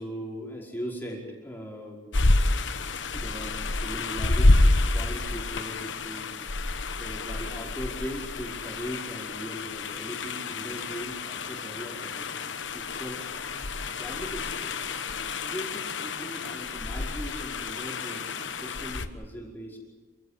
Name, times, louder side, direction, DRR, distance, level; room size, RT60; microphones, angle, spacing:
voice 1, 0.0-2.0 3.1-6.3 6.9-12.3 12.7-14.8 15.3-19.8, equal, 10° left, -2 dB, 5.1 m, -39 dB
sound 1, 2.1-19.1, left 2 dB, 80° left, 1.2 m, -28 dB
27.5 x 16.0 x 8.4 m, 1.4 s
head